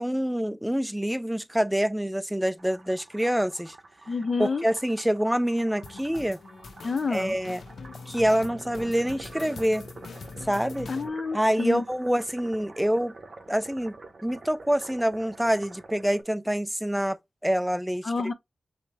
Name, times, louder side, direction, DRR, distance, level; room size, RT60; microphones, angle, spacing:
voice 1, 0.0-3.8 4.4-6.4 7.1-7.6 8.1-9.9 10.4-10.9 11.3-13.2 13.5-18.1, equal, 5° right, 0.4 m, -26 dB
sound 1, 2.6-16.2, right 3 dB, 50° right, 1.0 m, -47 dB
voice 2, 4.1-4.6 6.8-7.4 10.9-11.8 18.0-18.3, left 4 dB, 40° left, 0.6 m, -28 dB
sound 2, 5.8-11.1, left 4 dB, 80° left, 0.6 m, -43 dB
5.9 x 2.1 x 3.4 m
wide cardioid pair, 120°, 0 cm